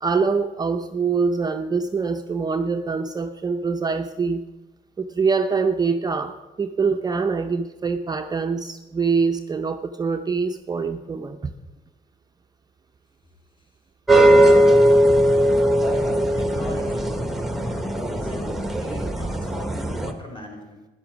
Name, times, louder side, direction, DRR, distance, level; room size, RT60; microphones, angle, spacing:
voice 1, 0.0-4.4 5.0-11.4, right 5 dB, 25° right, 6 dB, 0.6 m, -24 dB
sound 1, 14.1-20.1, right 1 dB, ahead, 1.2 m, -19 dB
voice 2, 16.4-17.1 18.1-20.9, left 1 dB, 30° left, 1 dB, 4.2 m, -40 dB
11.5 x 10.0 x 6.0 m, 1.1 s
cardioid pair, 110°, 17 cm